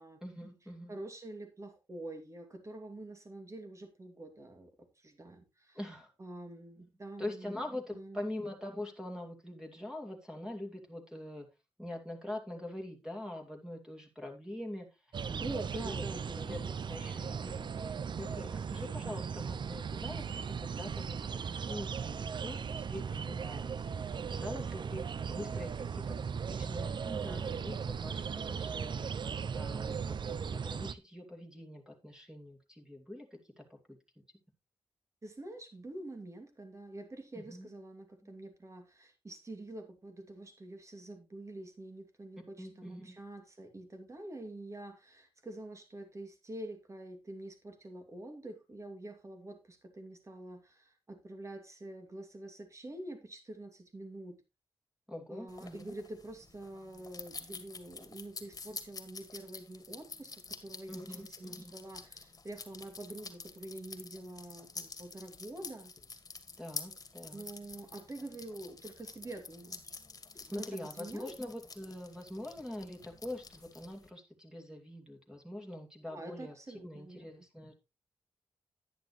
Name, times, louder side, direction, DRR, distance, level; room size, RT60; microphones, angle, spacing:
voice 1, 0.2-1.0 5.7-6.1 7.2-11.5 11.8-23.8 24.4-26.9 27.2-33.8 37.3-37.7 38.2-38.3 42.6-43.2 55.1-55.9 60.9-61.7 66.6-67.4 70.4-77.7, left 1 dB, 5° right, 2.6 m, -44 dB
voice 2, 0.9-5.8 6.2-7.6 7.9-8.2 15.2-16.9 17.4-17.7 27.0-27.5 35.2-54.4 55.3-65.9 67.3-69.9 70.5-71.3 76.1-77.5, right 1 dB, 35° right, 2.6 m, -46 dB
sound 1, 15.1-30.9, right 6 dB, 55° right, 0.5 m, -37 dB
sound 2, 55.5-74.1, left 4 dB, 40° left, 1.9 m, -48 dB
10.5 x 10.0 x 3.1 m
cardioid pair, 85°, 9 cm